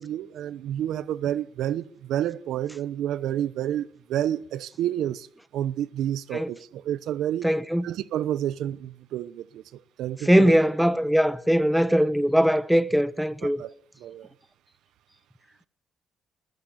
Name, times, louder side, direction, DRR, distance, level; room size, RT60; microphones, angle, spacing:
voice 1, 0.0-5.3 5.5-7.5 7.8-9.6 10.0-10.5 13.4-13.7 14.0-14.3, right 11 dB, 80° right, 0.9 m, -29 dB
voice 2, 7.4-7.8 10.3-13.6, equal, ahead, 1.2 m, -21 dB
22.0 x 15.0 x 8.1 m
cardioid pair, 90°, 0 cm